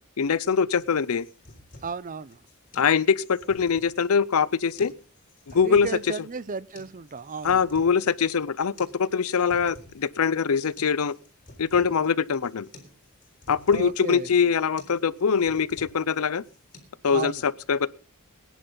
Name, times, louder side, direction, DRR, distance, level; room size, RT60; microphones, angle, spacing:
voice 1, 0.2-1.3 2.8-4.9 5.5-5.9 7.4-11.1 11.6-12.7 13.5-16.4 17.0-17.9, left 6 dB, 75° left, 0.6 m, -23 dB
sound 1, 0.8-16.8, left 2 dB, 40° left, 3.8 m, -51 dB
voice 2, 1.8-2.4 5.5-7.6 13.7-14.3 17.1-17.4, right 5 dB, 35° right, 0.6 m, -34 dB
21.5 x 10.5 x 3.9 m
head